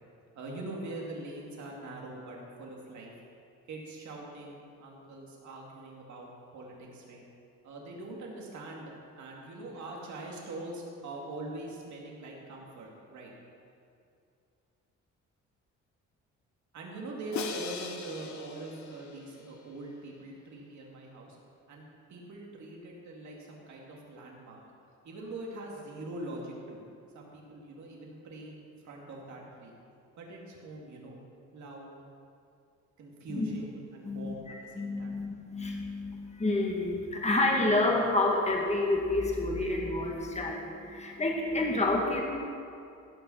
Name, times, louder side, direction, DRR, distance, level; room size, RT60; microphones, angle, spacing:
voice 1, 0.3-3.3 3.7-7.2 7.6-13.3 16.7-21.4 21.7-24.6 25.0-26.8 27.1-29.7 30.2-31.2 31.5-31.9 33.0-35.2, right 2 dB, 70° right, -2 dB, 2.6 m, -43 dB
Crash cymbal, 17.3-19.5, left 6 dB, 70° left, 1.1 m, -40 dB
voice 2, 34.0-42.2, left 2 dB, 20° left, 0 dB, 1.9 m, -29 dB
16.5 x 5.9 x 5.7 m, 2.4 s
cardioid pair, 90°, 30 cm